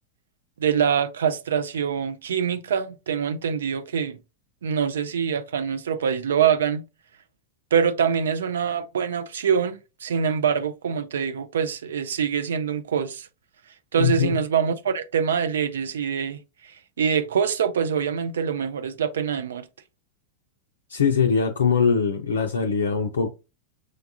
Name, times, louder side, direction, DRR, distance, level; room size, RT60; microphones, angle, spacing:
voice 1, 0.6-4.2 4.6-6.8 7.7-13.3 13.9-16.7 17.0-19.6, right 7 dB, 65° right, 0.4 m, -24 dB
voice 2, 14.0-14.4 20.9-23.3, left 6 dB, 70° left, 0.4 m, -22 dB
6.2 x 2.3 x 2.6 m
figure-of-eight pair, 90°, 0 cm